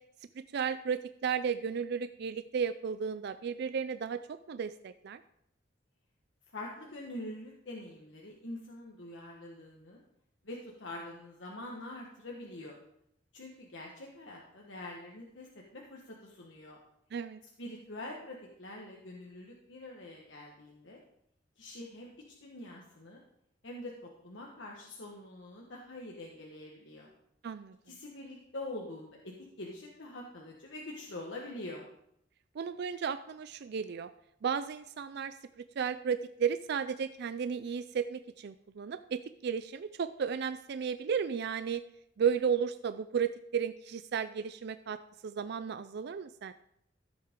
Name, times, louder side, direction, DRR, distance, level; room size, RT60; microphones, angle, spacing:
voice 1, 0.4-5.2 17.1-17.4 27.4-27.8 32.6-34.1 34.4-41.8 42.2-45.0 45.2-46.5, right 7 dB, 60° right, 11 dB, 0.4 m, -34 dB
voice 2, 6.5-10.0 10.4-12.8 13.3-15.5 15.7-16.8 17.6-21.0 21.6-22.1 22.4-23.2 23.6-27.1 27.9-29.2 29.6-31.8, left 1 dB, 70° left, -2 dB, 1.5 m, -45 dB
14.5 x 7.9 x 3.7 m, 0.75 s
head